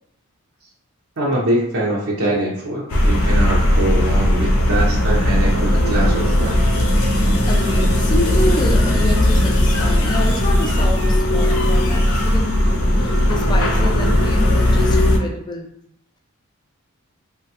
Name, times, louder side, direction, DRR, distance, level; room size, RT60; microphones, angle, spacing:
voice 1, 1.2-6.7, right 1 dB, 65° right, -4 dB, 0.6 m, -23 dB
sound 1, 2.9-15.2, left 1 dB, 70° left, 0.5 m, -17 dB
voice 2, 7.4-15.8, left 1 dB, 20° left, 2 dB, 0.3 m, -28 dB
3.0 x 2.2 x 2.8 m, 0.78 s
head